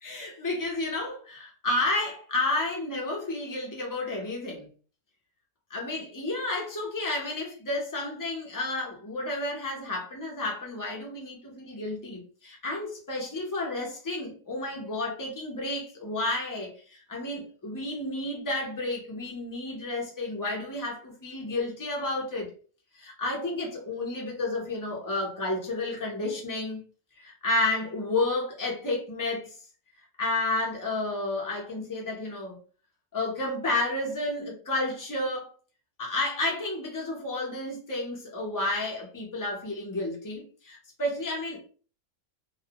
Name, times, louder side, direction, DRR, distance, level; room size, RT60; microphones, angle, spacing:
voice 1, 0.0-4.7 5.7-22.5 22.9-26.8 27.2-29.6 30.2-32.6 33.1-35.5 36.0-41.7, left 2 dB, 30° left, 0.4 m, -31 dB
2.4 x 2.1 x 2.8 m
omnidirectional pair, 1.6 m